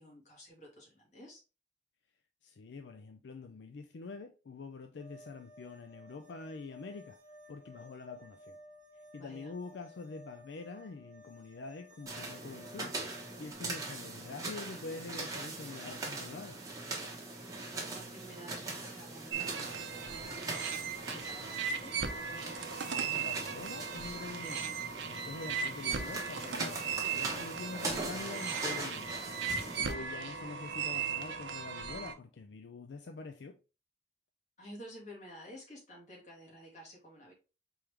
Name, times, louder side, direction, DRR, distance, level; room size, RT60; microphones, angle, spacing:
voice 1, 0.0-1.4 9.2-9.5 17.7-22.0 29.7-30.1 34.6-37.3, equal, 40° left, 2.2 m, -52 dB
voice 2, 2.4-7.2 7.5-8.6 9.1-13.0 13.4-16.6 22.8-24.8 25.1-33.6, left 4 dB, 70° left, 0.4 m, -46 dB
sound 1, 5.0-13.5, left 1 dB, 45° right, 1.1 m, -56 dB
sound 2, 12.1-29.9, right 2 dB, 20° right, 1.0 m, -41 dB
sound 3, 19.3-32.1, right 6 dB, 90° right, 0.7 m, -37 dB
4.5 x 3.5 x 3.3 m
head